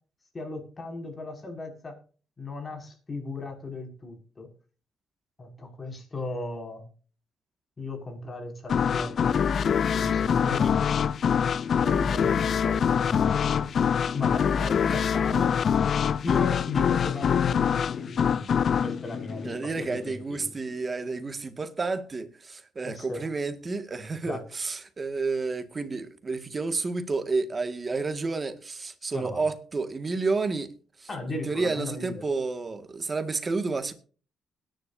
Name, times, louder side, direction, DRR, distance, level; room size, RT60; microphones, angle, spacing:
voice 1, 0.3-1.9 2.4-4.5 5.4-6.9 7.8-10.7 11.7-13.8 14.1-15.8 16.2-20.4 22.8-23.3 24.2-24.4 29.1-29.5 31.1-32.2, left 2 dB, 30° left, 5.9 m, -36 dB
sound 1, 8.7-20.2, left 7 dB, 55° left, 0.5 m, -24 dB
voice 2, 19.4-30.7 31.0-33.9, right 3 dB, 30° right, 1.8 m, -30 dB
21.5 x 10.5 x 2.7 m
cardioid pair, 90°, 0 cm